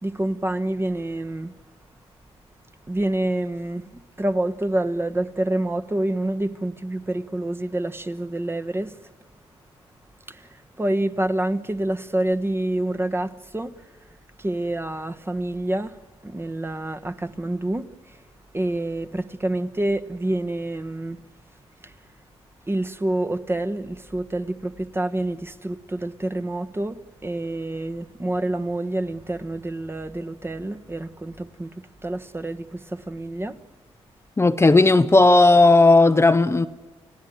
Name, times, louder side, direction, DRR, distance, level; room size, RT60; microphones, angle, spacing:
voice 1, 0.0-1.5 2.9-9.0 10.3-13.9 14.4-16.0 16.2-18.2 18.5-21.2 21.8-21.9 22.7-31.7 32.0-33.6, right 1 dB, 20° right, 1.3 m, -27 dB
voice 2, 34.4-36.7, left 2 dB, 20° left, 0.8 m, -14 dB
29.5 x 17.5 x 9.3 m
cardioid pair, 70°, 12 cm